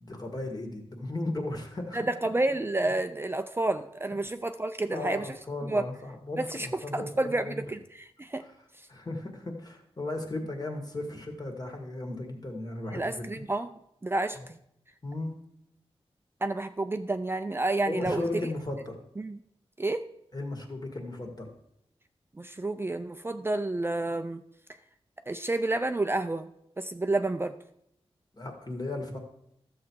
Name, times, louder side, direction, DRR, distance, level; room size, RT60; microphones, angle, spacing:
voice 1, 0.0-2.0 2.8-2.9 4.9-7.6 8.9-13.3 14.4-14.5 15.0-15.3 17.9-18.9 20.3-21.5 28.4-29.2, left 2 dB, 40° left, 2 dB, 2.0 m, -36 dB
voice 2, 1.9-5.3 5.6-5.8 6.4-8.4 12.9-13.7 14.0-14.6 16.4-18.2 19.2-19.4 19.8-20.0 22.4-24.4 25.3-26.5 26.8-27.5, right 2 dB, 20° right, 8 dB, 0.5 m, -30 dB
13.0 x 7.1 x 4.7 m, 0.76 s
wide cardioid pair, 80°, 11 cm